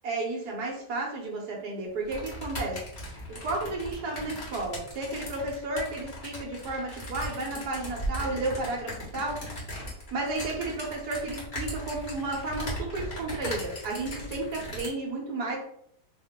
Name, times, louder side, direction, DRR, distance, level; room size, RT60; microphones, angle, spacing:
voice 1, 0.0-2.8 3.3-9.5 10.1-15.6, right 2 dB, 65° right, -1 dB, 1.5 m, -32 dB
sound 1, 2.1-14.9, equal, 30° left, 1.4 m, -38 dB
3.5 x 2.7 x 3.6 m, 0.69 s
omnidirectional pair, 1.8 m